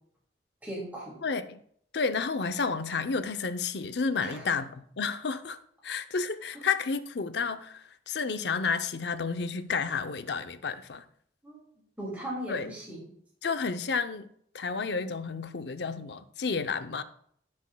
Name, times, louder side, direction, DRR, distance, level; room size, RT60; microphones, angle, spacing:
voice 1, 0.6-1.2 4.2-4.6 6.5-6.6 11.4-11.6 12.0-13.0, right 1 dB, 10° right, 2.4 m, -38 dB
voice 2, 1.2-1.6 1.9-5.6 5.8-11.0 12.5-12.7 13.4-14.3 14.5-17.0, left 5 dB, 70° left, 0.6 m, -31 dB
17.5 x 6.3 x 2.3 m
head